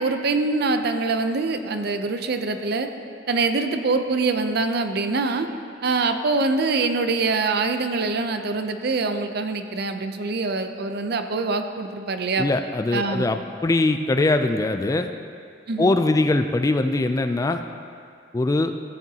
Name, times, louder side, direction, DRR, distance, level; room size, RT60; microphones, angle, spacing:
voice 1, 0.0-2.9 3.3-5.5 5.8-12.5 12.9-13.3 15.7-16.0, right 3 dB, 60° right, 7 dB, 0.6 m, -24 dB
voice 2, 12.4-15.1 15.8-17.6 18.3-18.7, left 2 dB, 20° left, 8 dB, 0.3 m, -22 dB
14.0 x 8.5 x 2.8 m, 2.3 s
head